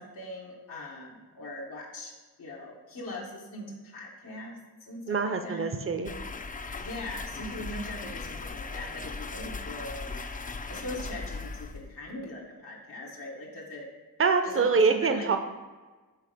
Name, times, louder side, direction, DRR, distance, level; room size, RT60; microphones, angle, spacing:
voice 1, 0.0-2.1 2.4-5.7 6.8-10.1 10.7-13.9 14.4-15.3, left 1 dB, 90° left, -5 dB, 1.1 m, -40 dB
voice 2, 5.1-6.1 14.2-15.4, right 4 dB, 35° right, 7 dB, 0.6 m, -25 dB
sound 1, 6.1-12.1, left 3 dB, 25° left, 0.3 m, -38 dB
5.7 x 3.3 x 5.0 m, 1.3 s
cardioid pair, 50°, 36 cm